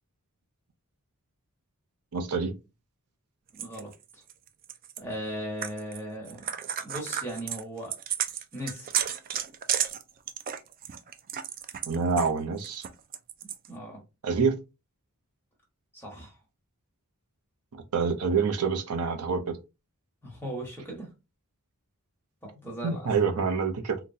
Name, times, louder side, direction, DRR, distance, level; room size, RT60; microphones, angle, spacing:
voice 1, 2.1-2.5 11.9-12.8 14.2-14.5 17.9-19.6 22.8-24.0, right 5 dB, 85° right, 0.6 m, -26 dB
voice 2, 3.5-4.2 5.0-6.4 6.8-8.0 8.5-9.0 13.7-14.0 15.9-16.4 20.2-21.1 22.4-23.0, equal, 10° left, 1.2 m, -38 dB
sound 1, 3.6-5.0 5.6-6.0 6.3-12.3 12.6-13.7, right 9 dB, 40° right, 0.3 m, -32 dB
3.8 x 2.2 x 2.6 m
head